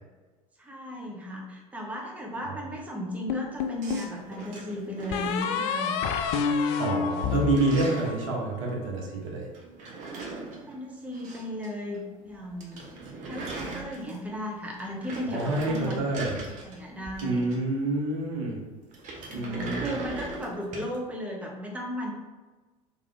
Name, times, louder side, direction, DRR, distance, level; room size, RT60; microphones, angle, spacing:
voice 1, 0.6-5.9 10.7-16.0 16.6-17.5 19.2-22.1, equal, 10° right, -2 dB, 0.8 m, -36 dB
sound 1, 3.3-4.1 5.1-8.4, left 6 dB, 55° left, 0.4 m, -28 dB
sound 2, 3.8-5.9 6.2-6.8 7.1-8.2 9.5-11.7 11.9-12.0 12.3-12.4 12.6-14.4 14.7-17.8 18.9-21.0, right 3 dB, 45° right, 0.9 m, -39 dB
voice 2, 6.8-9.5 15.3-16.3 17.2-18.6 19.3-19.8, right 2 dB, 65° right, -1 dB, 1.0 m, -27 dB
3.5 x 3.4 x 3.3 m, 1.3 s
figure-of-eight pair, 70°, 18 cm